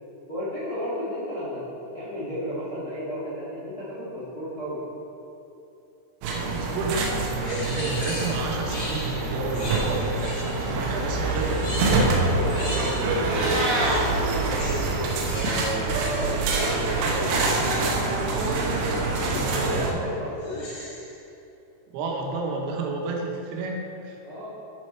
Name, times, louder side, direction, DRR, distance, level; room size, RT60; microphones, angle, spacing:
voice 1, 0.3-4.8 11.9-14.8 15.3-17.6 19.0-20.7 24.2-24.5, equal, 40° left, -10 dB, 1.4 m, -33 dB
sound 1, 6.2-19.9, right 3 dB, 75° right, 2.8 m, -25 dB
voice 2, 6.3-12.1 19.2-20.1 21.9-24.2, right 3 dB, 90° right, 0 dB, 3.7 m, -31 dB
sound 2, 7.4-10.8 11.3-13.3 13.6-17.4 18.5-18.8 19.5-19.9 20.4-21.2, left 1 dB, 70° left, 1.3 m, -38 dB
Meow, 13.1-14.0, right 1 dB, 45° right, 2.1 m, -27 dB
8.8 x 7.8 x 4.5 m, 2.9 s
omnidirectional pair, 5.6 m